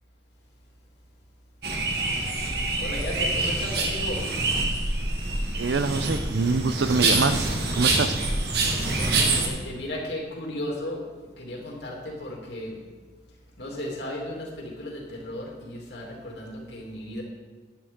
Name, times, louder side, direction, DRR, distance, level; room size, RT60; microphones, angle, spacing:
sound 1, 1.6-9.5, right 2 dB, 65° right, 1.5 m, -26 dB
voice 1, 2.8-4.2 8.6-12.8 13.6-17.2, left 1 dB, 75° left, -2 dB, 2.7 m, -35 dB
voice 2, 5.6-7.5 7.7-8.2, right 3 dB, 90° right, 11 dB, 0.6 m, -25 dB
11.5 x 9.8 x 3.7 m, 1.4 s
head